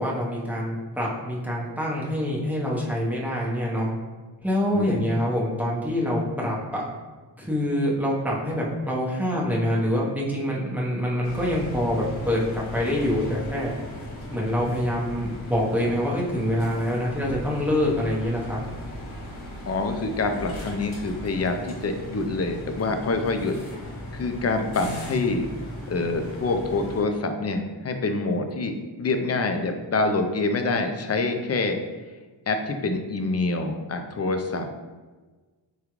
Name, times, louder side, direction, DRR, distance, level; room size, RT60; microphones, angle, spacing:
voice 1, 0.0-3.9 4.4-6.8 7.4-13.7 14.3-18.6, equal, 5° right, -5 dB, 0.8 m, -25 dB
voice 2, 4.7-5.1 19.7-23.6 24.1-25.5 25.9-31.8 32.5-34.7, left 3 dB, 35° left, 6 dB, 0.4 m, -26 dB
sound 1, 11.2-27.0, left 1 dB, 85° left, 0.9 m, -37 dB
3.5 x 2.3 x 3.0 m, 1.3 s
cardioid pair, 60°, 47 cm